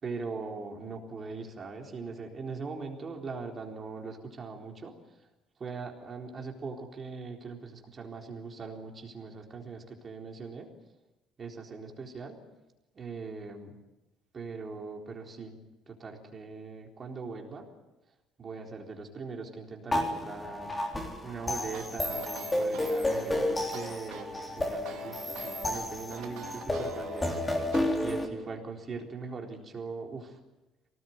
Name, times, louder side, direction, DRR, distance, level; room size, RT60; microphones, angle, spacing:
voice 1, 0.0-4.9 5.6-10.7 11.4-12.4 12.9-13.8 14.3-15.6 15.9-17.7 18.4-20.7 21.2-27.4 28.0-30.4, right 4 dB, 25° right, 1 dB, 4.0 m, -40 dB
sound 1, 19.9-28.3, left 1 dB, 10° left, 3.7 m, -31 dB
sound 2, 21.6-27.8, right 10 dB, 85° right, 2.8 m, -46 dB
24.5 x 19.0 x 9.6 m, 1.0 s
cardioid pair, 165°, 0 cm